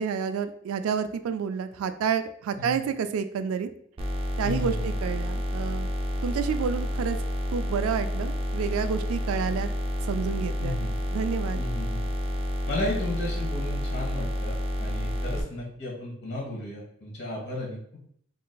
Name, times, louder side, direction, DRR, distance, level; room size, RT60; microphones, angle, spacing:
voice 1, 0.0-3.7 4.4-5.9 6.2-7.2 7.5-9.7 10.1-10.8 11.1-11.6, right 6 dB, 90° right, 13 dB, 0.3 m, -29 dB
sound 1, 4.0-15.4, equal, 30° right, 0.5 m, -29 dB
voice 2, 4.4-4.9 10.6-10.9 11.5-12.1 12.7-18.0, left 2 dB, 55° left, -2 dB, 1.1 m, -34 dB
3.8 x 2.5 x 2.3 m, 0.66 s
head